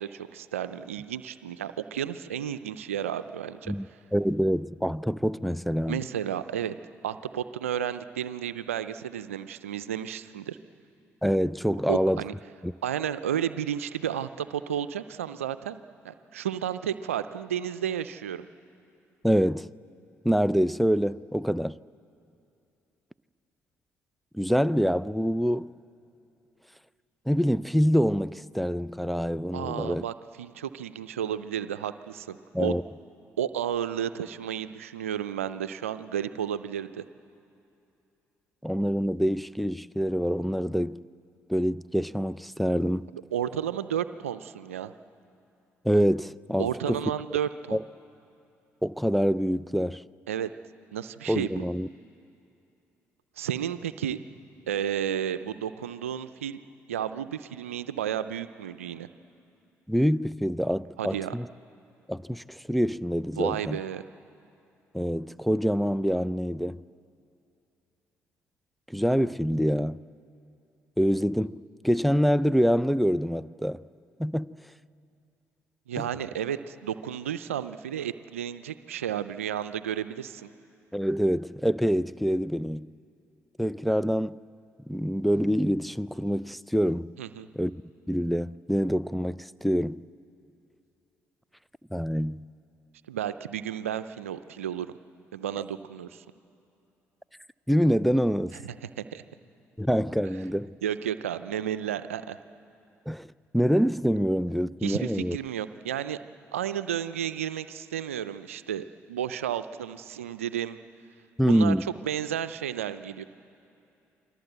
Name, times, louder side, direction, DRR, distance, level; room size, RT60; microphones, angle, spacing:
voice 1, 0.0-3.7 5.9-6.8 7.0-10.6 11.9-12.3 12.8-15.8 16.0-18.4 29.5-32.7 33.4-37.0 43.3-44.9 46.6-47.8 50.3-50.5 50.9-51.6 53.4-54.2 54.7-56.6 56.9-59.1 61.0-61.3 63.4-64.0 75.9-80.5 87.2-87.5 93.1-94.9 95.3-96.2 98.5-99.2 100.8-102.4 104.8-106.2 106.5-110.8 111.5-111.7 112.0-113.2, right 9 dB, 90° right, 0.5 m, -32 dB
voice 2, 4.1-6.0 11.2-12.2 12.6-12.7 19.2-19.7 20.2-21.8 24.3-25.8 27.3-30.0 32.5-32.8 38.6-41.0 41.5-43.1 45.8-47.1 47.7-47.8 48.8-50.0 51.3-51.9 59.9-61.5 62.1-63.8 64.9-66.8 68.9-70.0 71.0-73.8 74.2-74.6 76.0-76.1 80.9-82.9 83.6-84.4 84.9-87.2 87.6-87.7 88.1-90.1 91.9-92.5 97.7-98.6 99.8-100.8 103.1-105.4 111.4-111.9, equal, ahead, 0.5 m, -26 dB
29.0 x 23.5 x 8.0 m
hypercardioid pair, 45°, 7 cm